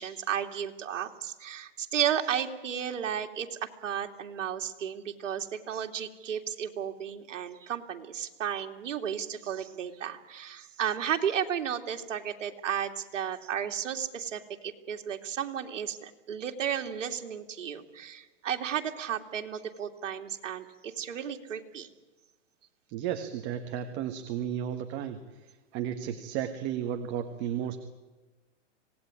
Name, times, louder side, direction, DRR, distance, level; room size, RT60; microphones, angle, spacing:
voice 1, 0.0-21.9, right 9 dB, 75° right, 4 dB, 2.7 m, -33 dB
voice 2, 22.9-27.8, right 9 dB, 30° right, 6 dB, 1.5 m, -34 dB
26.0 x 18.5 x 9.8 m, 1.2 s
hypercardioid pair, 150°, 37 cm